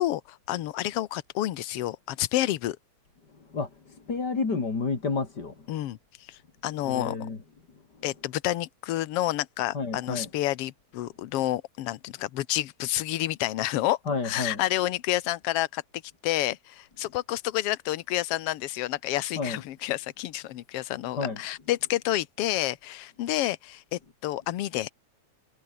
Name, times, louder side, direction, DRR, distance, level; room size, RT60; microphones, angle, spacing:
voice 1, 0.0-2.8 5.7-6.0 6.3-7.2 8.0-14.0 14.2-15.8 16.2-24.9, left 15 dB, 65° left, 1.8 m, -29 dB
voice 2, 3.5-5.7 6.9-7.4 9.7-10.3 14.1-14.6 19.4-19.6 21.2-21.4, left 4 dB, 35° left, 3.6 m, -30 dB
omnidirectional pair, 3.3 m